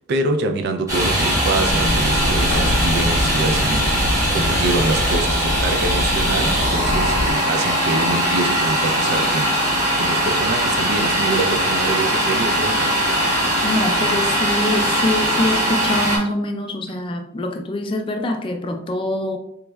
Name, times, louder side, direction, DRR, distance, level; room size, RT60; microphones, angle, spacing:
voice 1, 0.0-13.0, right 3 dB, 55° right, 0.3 m, -25 dB
Domestic sounds home sounds, 0.9-16.2, equal, 15° right, 0.9 m, -20 dB
Truck, 1.7-7.3, left 1 dB, 80° left, 0.6 m, -24 dB
voice 2, 13.6-19.4, left 1 dB, 25° left, 0.3 m, -24 dB
3.5 x 3.0 x 2.2 m
head